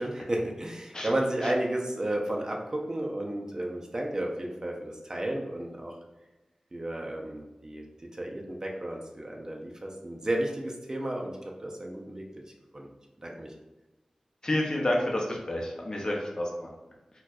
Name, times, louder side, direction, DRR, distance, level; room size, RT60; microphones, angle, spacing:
voice 1, 0.0-6.0 6.7-11.4 11.6-12.2 12.7-12.9 13.2-13.5, right 1 dB, 30° right, 0 dB, 0.6 m, -32 dB
voice 2, 14.4-16.7, left 1 dB, 35° left, -1 dB, 0.7 m, -29 dB
4.3 x 2.3 x 2.4 m, 1.1 s
wide cardioid pair, 75°, 2 cm